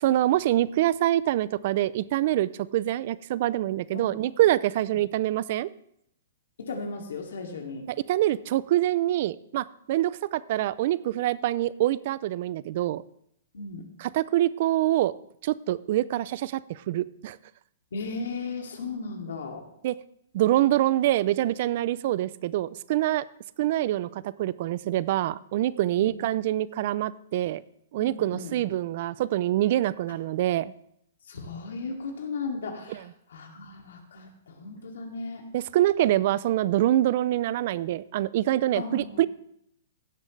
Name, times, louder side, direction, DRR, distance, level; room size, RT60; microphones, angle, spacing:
voice 1, 0.0-5.7 7.9-13.0 14.1-15.1 15.4-17.4 19.8-19.9 20.3-23.2 23.6-27.6 27.9-30.7 35.5-39.3, right 14 dB, 45° right, 19 dB, 0.4 m, -25 dB
voice 2, 6.6-7.9 13.5-13.8 17.9-19.6 26.0-26.1 28.0-28.5 31.3-35.5 38.8-39.2, left 4 dB, 85° left, 2 dB, 2.4 m, -36 dB
16.5 x 7.5 x 3.2 m, 0.72 s
hypercardioid pair, 160°, 0 cm